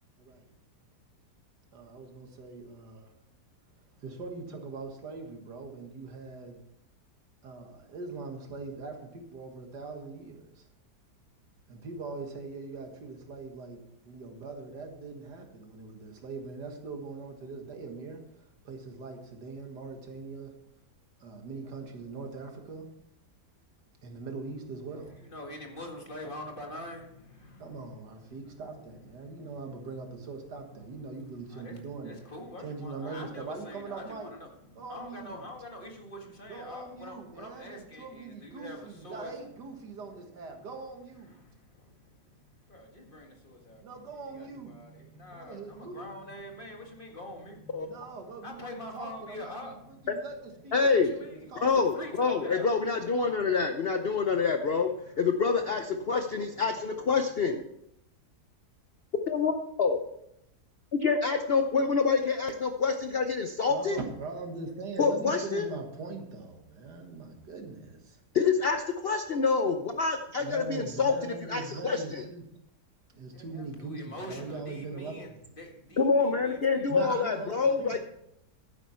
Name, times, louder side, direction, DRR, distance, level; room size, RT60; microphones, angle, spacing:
voice 1, 0.2-0.5 1.7-3.1 3.8-6.6 7.4-10.7 11.7-20.5 21.2-22.9 24.0-25.2 27.6-32.3 32.6-34.3 34.8-35.5 36.5-41.4 43.8-44.8 45.3-46.0 47.8-52.2 63.7-68.2 70.4-72.4 73.1-75.4 76.9-78.0, right 3 dB, 80° right, 4 dB, 2.2 m, -42 dB
voice 2, 25.3-28.0 29.2-29.4 31.1-34.5 34.8-39.3 41.4-42.2 42.7-44.1 44.3-48.0 48.4-50.1 51.0-52.8 73.3-75.3 75.6-77.1, left 1 dB, 30° left, 1 dB, 1.9 m, -45 dB
voice 3, 50.7-51.1 51.6-54.9 55.2-57.6 59.3-60.0 61.0-64.0 65.0-65.7 68.3-72.2 76.0-78.0, left 5 dB, 55° left, 6 dB, 0.7 m, -27 dB
12.0 x 9.7 x 4.4 m, 0.80 s
omnidirectional pair, 1.8 m